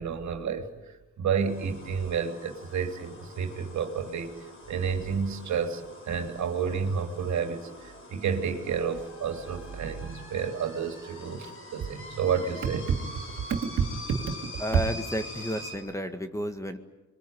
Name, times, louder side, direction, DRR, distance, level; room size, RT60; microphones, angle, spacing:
voice 1, 0.0-4.3 4.7-13.0 13.5-14.4 14.7-14.8, right 6 dB, 65° right, 5 dB, 3.3 m, -30 dB
sound 1, 1.4-15.8, left 2 dB, 45° left, 5.8 m, -45 dB
voice 2, 14.6-16.8, equal, 10° left, 8 dB, 1.8 m, -32 dB
26.5 x 22.5 x 9.3 m, 1.1 s
cardioid pair, 90°, 30 cm